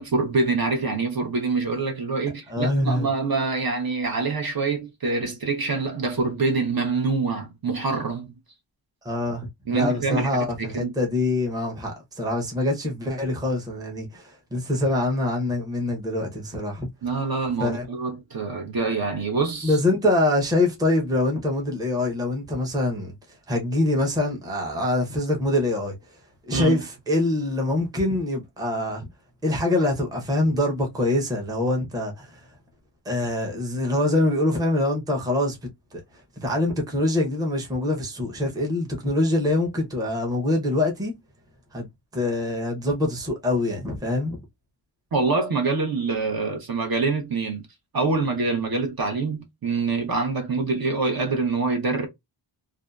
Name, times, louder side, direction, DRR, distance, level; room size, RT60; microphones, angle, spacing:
voice 1, 0.0-8.3 9.7-10.9 17.0-19.8 26.5-26.8 45.1-47.7 47.9-52.1, right 4 dB, 50° right, 0.8 m, -25 dB
voice 2, 2.5-3.1 9.0-16.9 17.6-17.9 19.6-23.1 23.5-25.9 26.5-29.1 29.4-32.4 33.1-35.6 36.4-41.1 41.7-41.9 42.1-44.4, left 1 dB, 10° right, 0.6 m, -24 dB
2.6 x 2.3 x 2.2 m
wide cardioid pair, 170°, 45 cm